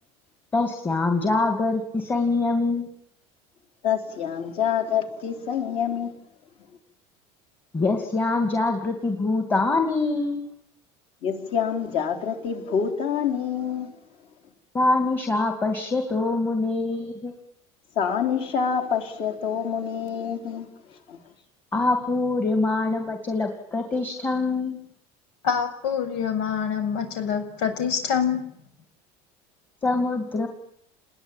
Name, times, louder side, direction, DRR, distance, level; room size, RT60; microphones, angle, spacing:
voice 1, 0.5-2.9 7.7-10.4 14.7-17.3 21.7-24.8 29.8-30.5, left 3 dB, 15° left, 2.4 m, -24 dB
voice 2, 3.8-6.1 11.2-14.0 18.0-21.2, left 7 dB, 40° left, 4.4 m, -27 dB
voice 3, 25.4-28.4, left 7 dB, 85° left, 7.2 m, -25 dB
29.0 x 21.5 x 9.1 m
cardioid pair, 180°, 14 cm